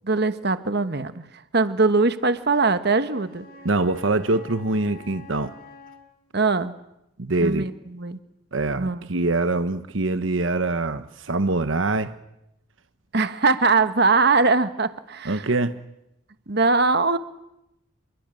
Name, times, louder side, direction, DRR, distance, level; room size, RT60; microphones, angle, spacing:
voice 1, 0.0-1.2 1.5-3.5 6.3-6.7 7.4-8.2 8.8-9.1 13.1-15.5 16.5-17.2, right 3 dB, 55° right, 1.4 m, -21 dB
Wind instrument woodwind instrument, 2.5-6.1, left 3 dB, 50° left, 5.5 m, -46 dB
voice 2, 3.6-5.5 7.2-7.7 8.5-12.2 15.2-15.8, right 2 dB, 80° right, 1.2 m, -24 dB
27.5 x 23.5 x 9.1 m
head